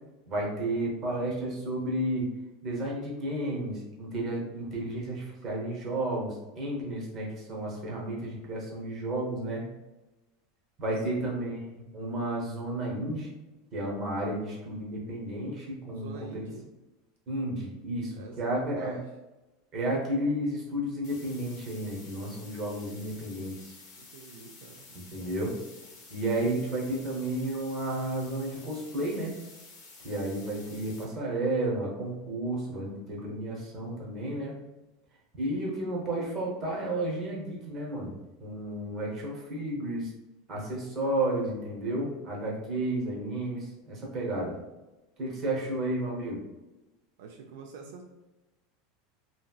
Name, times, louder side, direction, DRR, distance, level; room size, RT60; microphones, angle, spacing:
voice 1, 0.3-2.3 2.6-9.7 10.8-11.6 11.9-13.3 13.7-16.4 17.3-18.9 19.7-23.7 24.9-25.5 26.1-29.4 30.0-34.5 35.4-40.1 40.5-44.6 45.2-46.4, right 1 dB, 25° right, -2 dB, 0.7 m, -32 dB
voice 2, 15.9-16.7 18.1-19.1 24.0-25.4 45.4-45.8 47.2-48.1, right 5 dB, 65° right, 2 dB, 0.3 m, -46 dB
sound 1, 21.0-31.0, left 3 dB, 30° left, 0.7 m, -51 dB
2.9 x 2.7 x 2.2 m, 1.0 s
supercardioid pair, 180°, 0 cm